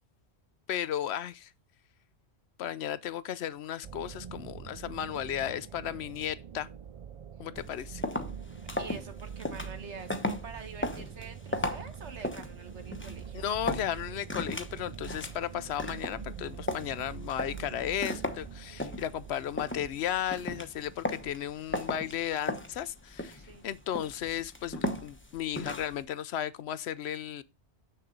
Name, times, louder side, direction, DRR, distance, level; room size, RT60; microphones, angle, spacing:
voice 1, 0.7-1.5 2.6-6.7 7.4-8.0 13.3-27.4, left 10 dB, 75° left, 0.8 m, -35 dB
sound 1, 3.8-21.3, right 8 dB, 50° right, 0.4 m, -45 dB
sound 2, 7.6-26.0, left 1 dB, 10° left, 0.9 m, -37 dB
voice 2, 8.7-13.5 23.3-23.6, right 5 dB, 80° right, 1.7 m, -46 dB
7.3 x 6.7 x 3.9 m
omnidirectional pair, 1.1 m